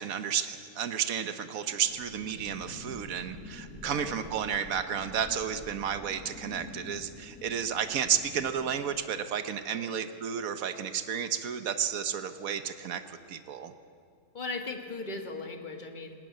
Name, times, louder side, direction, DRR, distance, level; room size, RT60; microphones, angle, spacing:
voice 1, 0.0-13.7, right 8 dB, 80° right, 9 dB, 1.4 m, -32 dB
sound 1, 1.8-8.8, left 2 dB, 85° left, 5.1 m, -47 dB
voice 2, 3.8-4.1 9.7-9.9 14.3-16.1, left 3 dB, 35° left, 4 dB, 1.8 m, -38 dB
20.0 x 17.5 x 9.1 m, 2.2 s
omnidirectional pair, 1.4 m